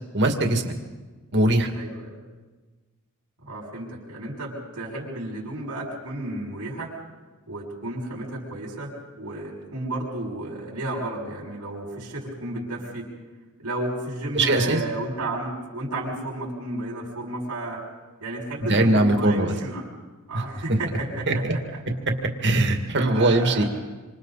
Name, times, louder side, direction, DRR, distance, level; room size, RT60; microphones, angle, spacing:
voice 1, 0.1-0.7 1.3-1.7 14.3-14.8 18.7-19.5 20.3-20.4 21.3-21.5 22.4-23.6, right 2 dB, 55° right, 4 dB, 2.3 m, -20 dB
voice 2, 1.7-2.2 3.4-6.9 7.5-13.1 13.6-17.8 18.2-19.9 20.3-21.4 21.7-21.8 23.0-23.7, right 1 dB, 90° right, -4 dB, 6.4 m, -32 dB
27.0 x 26.5 x 4.2 m, 1.3 s
head